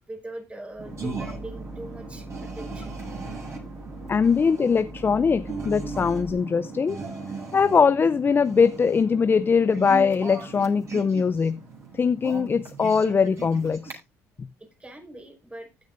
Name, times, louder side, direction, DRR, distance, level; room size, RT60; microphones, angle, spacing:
voice 1, 0.1-2.9 14.6-15.7, right 1 dB, 15° right, 5.1 m, -41 dB
sound 1, 0.7-6.3, right 1 dB, 70° left, 2.6 m, -43 dB
sound 2, 0.8-13.9, right 3 dB, 40° right, 7.8 m, -38 dB
voice 2, 4.1-7.0 7.5-11.6 11.9-14.0 14.4-14.5, left 5 dB, 30° left, 0.5 m, -21 dB
15.5 x 9.6 x 2.6 m
hypercardioid pair, 70°, 8 cm